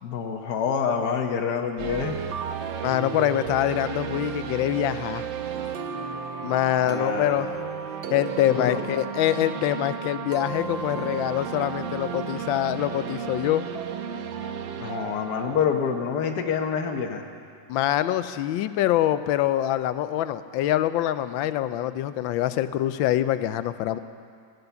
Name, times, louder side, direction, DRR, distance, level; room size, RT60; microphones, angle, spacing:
voice 1, 0.0-2.2 6.8-7.6 8.5-8.8 14.8-17.2, left 6 dB, 60° left, 3 dB, 1.5 m, -27 dB
sound 1, 1.8-16.6, right 7 dB, 80° right, 1.6 m, -33 dB
voice 2, 2.8-5.2 6.4-7.5 8.1-13.6 17.7-24.0, left 13 dB, 85° left, 13 dB, 1.3 m, -25 dB
14.5 x 11.5 x 6.9 m, 2.3 s
omnidirectional pair, 2.1 m